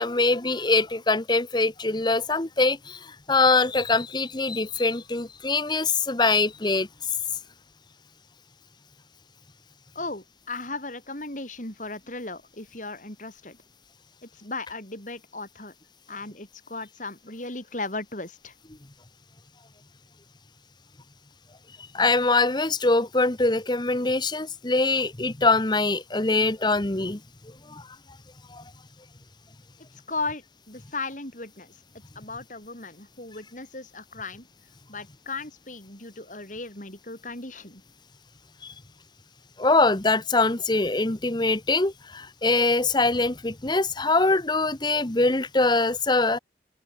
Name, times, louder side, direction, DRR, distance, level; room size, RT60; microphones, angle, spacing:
voice 1, 0.0-6.9 21.9-27.2 27.7-27.8 28.5-28.6 38.6-38.7 39.6-46.4, left 3 dB, 25° left, 1.1 m, -23 dB
voice 2, 9.9-13.6 14.2-15.7 16.1-18.5 30.1-31.8 32.1-34.5 34.9-37.8, left 3 dB, 45° left, 5.0 m, -36 dB
open air
head